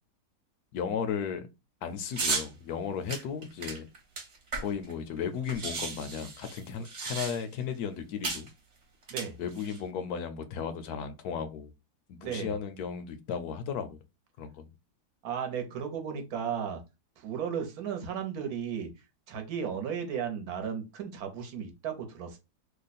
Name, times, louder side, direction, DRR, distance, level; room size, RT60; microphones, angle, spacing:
voice 1, 0.7-1.5 1.8-3.9 4.6-8.5 9.4-11.7 12.1-14.0 14.4-14.7, left 7 dB, 70° left, 1.0 m, -35 dB
sound 1, 2.1-2.5 3.1-4.9 5.2-5.3 5.5-7.6 8.2-8.5 9.0-9.8, right 3 dB, 45° right, 1.3 m, -34 dB
voice 2, 12.2-12.5 15.2-16.8 17.2-18.9 19.3-22.4, right 7 dB, 65° right, 1.2 m, -35 dB
3.0 x 2.2 x 4.0 m
omnidirectional pair, 1.8 m